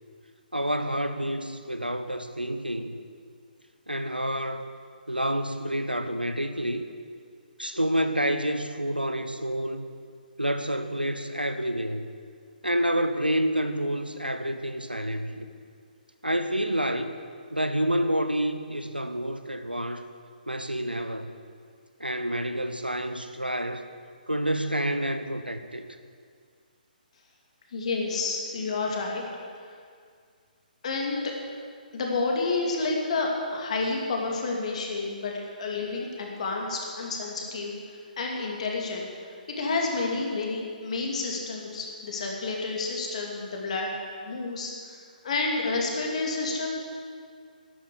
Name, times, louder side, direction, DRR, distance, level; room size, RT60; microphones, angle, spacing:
voice 1, 0.5-3.0 3.9-4.7 5.1-6.8 7.6-9.9 10.4-12.1 12.6-15.5 16.2-17.1 17.5-20.0 20.5-21.3 22.0-23.8 24.3-25.9, equal, 90° right, 9 dB, 1.0 m, -28 dB
voice 2, 27.7-29.2 29.5-29.8 30.8-31.3 31.9-39.1 39.5-43.9 44.2-46.7, left 3 dB, 45° left, 0 dB, 2.6 m, -30 dB
11.5 x 9.5 x 8.2 m, 2.1 s
figure-of-eight pair, 135°, 5 cm